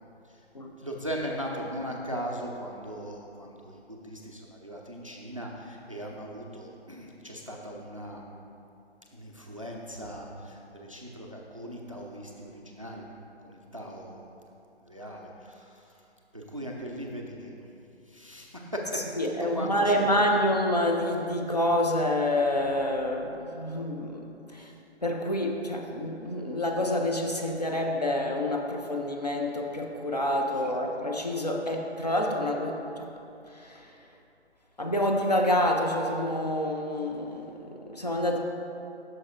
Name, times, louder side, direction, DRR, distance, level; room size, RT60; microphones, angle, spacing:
voice 1, 0.8-8.2 9.1-13.0 13.4-14.3 14.8-16.0 16.3-17.5 18.1-20.1 24.5-24.7 30.4-30.6, equal, 30° right, 0 dB, 0.4 m, -39 dB
voice 2, 18.9-24.7 25.0-33.1 33.5-34.1 34.8-38.4, left 1 dB, 40° left, 1 dB, 0.4 m, -28 dB
8.4 x 6.3 x 2.5 m, 2.7 s
figure-of-eight pair, 145°, 34 cm